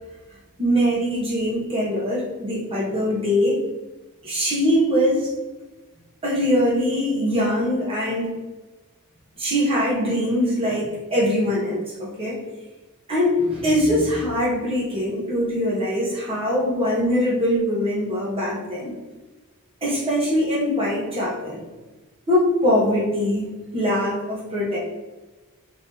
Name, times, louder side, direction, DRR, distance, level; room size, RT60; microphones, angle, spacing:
voice 1, 0.6-3.6 4.2-5.3 6.2-8.3 9.4-12.4 13.1-18.9 19.8-21.6 22.3-24.8, equal, 25° right, -5 dB, 1.2 m, -22 dB
3.5 x 3.0 x 2.9 m, 1.2 s
head